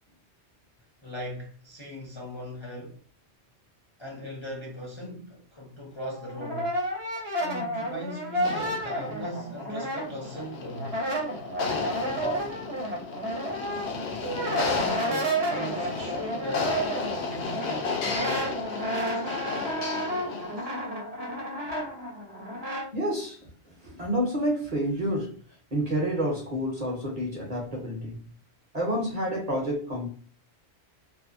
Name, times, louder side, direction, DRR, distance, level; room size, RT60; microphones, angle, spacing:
voice 1, 1.0-3.0 4.0-6.8 7.4-11.0 11.7-12.7 14.2-16.8 17.3-18.6, equal, 35° left, 0.6 m, -38 dB
Brass instrument, 6.0-10.5 10.7-22.9, right 1 dB, 65° right, 1.0 m, -31 dB
sound 1, 8.4-20.7, left 5 dB, 75° left, 0.9 m, -33 dB
voice 2, 22.9-23.4 23.8-25.4 25.7-28.3 28.7-30.1, equal, 40° right, 0.8 m, -29 dB
2.6 x 2.1 x 2.4 m
omnidirectional pair, 1.2 m